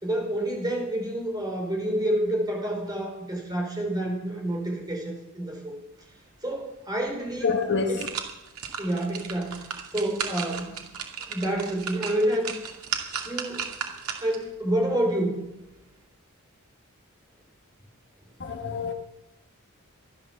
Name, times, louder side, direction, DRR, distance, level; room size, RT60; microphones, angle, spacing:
voice 1, 0.0-5.7 6.4-7.5 7.9-8.0 8.8-9.6 9.9-10.7 11.3-12.5 13.2-13.6 14.2-15.4, right 1 dB, 20° right, 1 dB, 4.9 m, -28 dB
sound 1, 7.1-7.2 7.6-14.5 14.9-15.0, right 7 dB, 90° right, 2.5 m, -35 dB
voice 2, 7.4-8.1 18.4-18.9, left 4 dB, 55° left, 6 dB, 1.4 m, -26 dB
15.5 x 11.5 x 7.3 m, 0.92 s
head